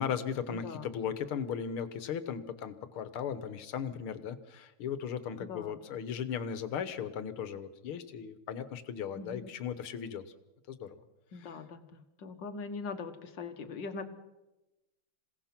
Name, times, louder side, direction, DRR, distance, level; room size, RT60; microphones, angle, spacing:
voice 1, 0.0-10.2 10.7-11.0 11.3-11.6, left 7 dB, 80° left, 13 dB, 2.0 m, -37 dB
voice 2, 0.5-0.9 5.5-5.8 9.2-9.5 11.3-14.1, left 4 dB, 60° left, 9 dB, 1.9 m, -41 dB
27.5 x 17.0 x 6.0 m, 1.0 s
omnidirectional pair, 2.3 m